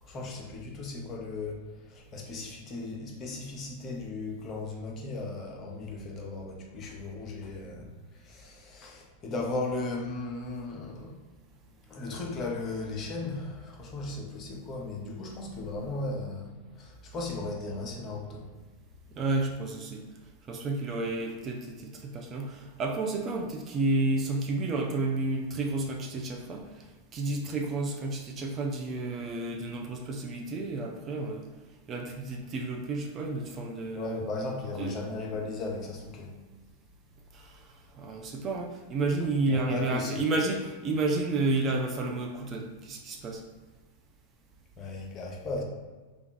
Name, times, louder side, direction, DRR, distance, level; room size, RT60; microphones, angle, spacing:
voice 1, 0.0-11.2 11.9-18.5 33.9-36.3 39.5-40.2 44.8-45.6, left 3 dB, 30° left, -1 dB, 0.7 m, -36 dB
voice 2, 19.2-20.0 20.5-26.6 27.1-31.5 31.9-34.2 34.8-35.0 37.3-37.6 38.0-43.4, right 2 dB, 30° right, 1 dB, 0.4 m, -31 dB
3.3 x 2.4 x 3.9 m, 1.3 s
figure-of-eight pair, 90°, 0 cm